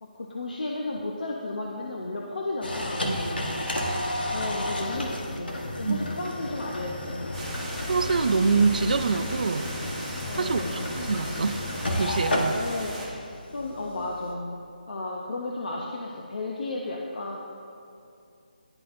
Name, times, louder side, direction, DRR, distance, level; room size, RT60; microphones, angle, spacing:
voice 1, 0.0-3.1 4.3-7.3 10.3-10.8 12.5-17.4, left 2 dB, 60° left, -1 dB, 0.6 m, -34 dB
sound 1, 2.6-14.3, left 1 dB, 90° left, 1.0 m, -32 dB
voice 2, 3.0-3.5 5.8-6.1 7.9-9.7 10.3-11.6 11.9-12.6, right 4 dB, 60° right, 10 dB, 0.4 m, -26 dB
sound 2, 7.3-13.1, right 1 dB, 5° left, 0.8 m, -38 dB
10.5 x 4.1 x 2.5 m, 2.5 s
hypercardioid pair, 170°, 5 cm